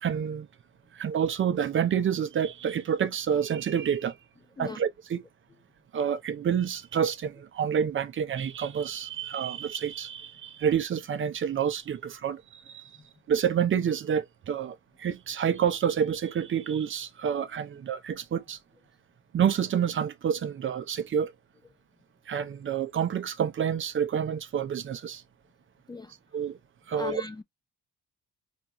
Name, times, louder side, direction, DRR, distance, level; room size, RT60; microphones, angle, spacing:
voice 1, 0.0-0.5 0.9-4.2 4.6-5.2 5.9-12.9 13.3-18.6 19.3-21.3 22.3-25.2 26.3-26.6 26.9-27.2, right 8 dB, 40° right, 0.5 m, -28 dB
voice 2, 26.9-27.4, left 3 dB, 15° left, 0.3 m, -36 dB
2.6 x 2.3 x 4.0 m
cardioid pair, 90°, 30 cm